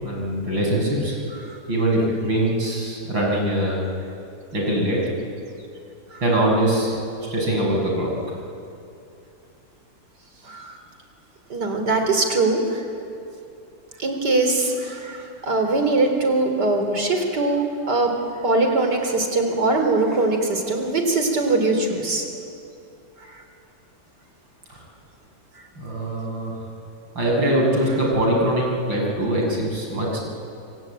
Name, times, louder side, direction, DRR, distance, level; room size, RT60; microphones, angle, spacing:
voice 1, 0.0-1.2 1.7-3.8 4.5-5.0 6.2-6.9 7.3-8.1 24.7-24.8 25.8-26.5 27.2-30.2, right 1 dB, 90° right, -1 dB, 7.4 m, -22 dB
voice 2, 11.5-12.8 14.0-18.1 18.4-22.2, right 2 dB, 60° right, 5 dB, 4.3 m, -21 dB
26.5 x 24.5 x 9.0 m, 2.6 s
omnidirectional pair, 2.0 m